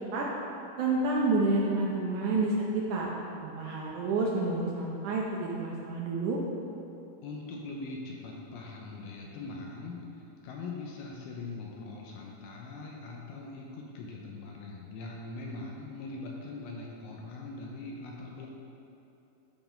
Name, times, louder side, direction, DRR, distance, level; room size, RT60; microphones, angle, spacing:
voice 1, 0.8-3.1 3.4-6.4, right 3 dB, 80° right, -3 dB, 1.8 m, -29 dB
voice 2, 7.2-18.5, left 3 dB, 80° left, -1 dB, 2.5 m, -41 dB
11.5 x 3.9 x 5.2 m, 2.8 s
omnidirectional pair, 4.5 m